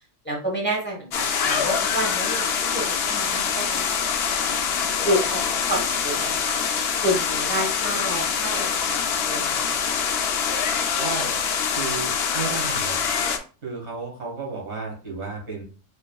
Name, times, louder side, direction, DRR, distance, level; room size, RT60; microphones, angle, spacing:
voice 1, 0.2-4.5 5.0-6.6 7.0-9.9, equal, 10° left, -2 dB, 0.9 m, -29 dB
sound 1, 1.1-13.4, left 6 dB, 65° left, 0.7 m, -25 dB
voice 2, 11.0-11.3 11.7-13.0 13.6-15.6, right 4 dB, 65° right, -1 dB, 1.5 m, -32 dB
4.5 x 3.3 x 2.2 m, 0.37 s
omnidirectional pair, 1.3 m